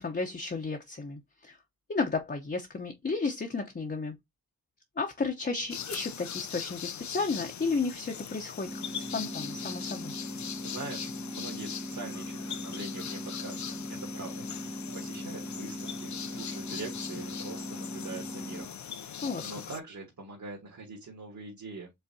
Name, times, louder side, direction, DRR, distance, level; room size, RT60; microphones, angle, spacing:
voice 1, 0.0-1.6 1.9-4.2 5.0-10.1 19.2-19.5, left 4 dB, 25° left, 0.9 m, -33 dB
sound 1, 5.7-19.8, left 8 dB, 45° left, 0.6 m, -41 dB
sound 2, 8.6-18.7, equal, ahead, 0.3 m, -40 dB
voice 2, 10.6-21.9, right 3 dB, 50° right, 2.0 m, -44 dB
5.5 x 3.2 x 2.8 m
cardioid pair, 65°, 39 cm